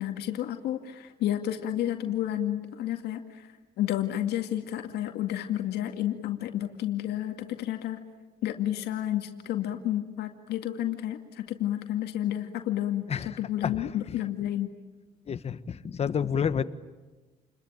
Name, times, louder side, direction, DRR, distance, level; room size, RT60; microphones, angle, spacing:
voice 1, 0.0-3.4 3.8-8.0 8.4-14.7, left 12 dB, 75° left, 6 dB, 2.2 m, -31 dB
voice 2, 13.1-14.2 15.3-16.6, left 7 dB, 40° left, 13 dB, 1.3 m, -30 dB
29.0 x 21.5 x 8.9 m, 1.2 s
cardioid pair, 110°, 17 cm